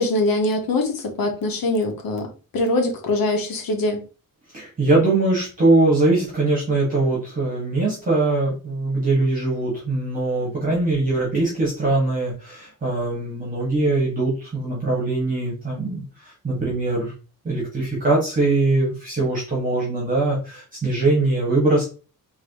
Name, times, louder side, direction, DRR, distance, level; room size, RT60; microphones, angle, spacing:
voice 1, 0.0-2.3 2.5-4.0, left 2 dB, 75° left, 3 dB, 1.3 m, -22 dB
voice 2, 4.5-17.1 17.4-21.8, right 2 dB, 25° right, -5 dB, 1.7 m, -22 dB
4.8 x 3.0 x 3.0 m, 0.34 s
wide cardioid pair, 180°, 35 cm